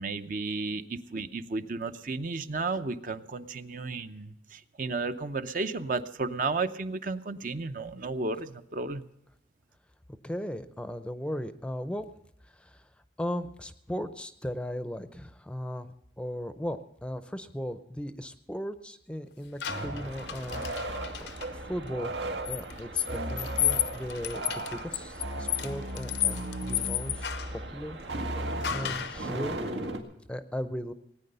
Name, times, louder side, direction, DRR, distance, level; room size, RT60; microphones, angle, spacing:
voice 1, 0.0-9.0, right 3 dB, 50° right, 10 dB, 0.7 m, -33 dB
voice 2, 10.1-12.1 12.5-12.9 13.2-15.9 16.2-20.6 21.5-22.1 22.5-28.0 28.4-29.6 30.3-30.9, equal, 5° left, 11 dB, 0.5 m, -37 dB
sound 1, 19.6-21.5 22.5-27.6 28.6-29.3, left 12 dB, 75° left, 0.6 m, -32 dB
sound 2, 19.7-30.0, right 1 dB, 90° right, 1.8 m, -36 dB
19.0 x 9.5 x 6.7 m, 0.78 s
head